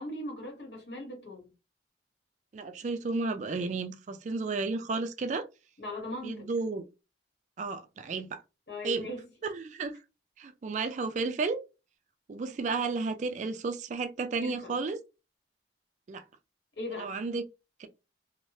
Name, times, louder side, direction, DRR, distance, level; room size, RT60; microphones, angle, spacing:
voice 1, 0.0-1.5 5.8-6.5 8.7-9.3 14.4-14.8 16.8-17.2, left 1 dB, 70° left, 1.0 m, -39 dB
voice 2, 2.5-5.4 6.2-6.8 7.6-8.4 8.8-9.1 9.4-9.9 10.4-11.6 12.3-15.0 16.1-16.2 17.0-17.4 17.8-17.9, right 4 dB, 40° right, 0.3 m, -32 dB
2.7 x 2.1 x 3.1 m
head